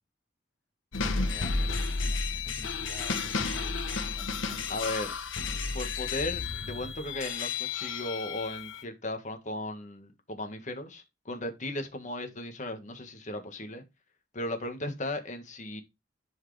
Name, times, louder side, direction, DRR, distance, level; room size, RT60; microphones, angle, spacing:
sound 1, 0.9-8.8, left 4 dB, 85° left, 1.1 m, -32 dB
voice 1, 1.0-5.1, equal, 5° left, 4.3 m, -49 dB
voice 2, 2.5-2.8 4.7-5.1 5.7-13.8 14.3-15.8, left 1 dB, 40° left, 1.6 m, -36 dB
11.5 x 4.8 x 3.3 m
head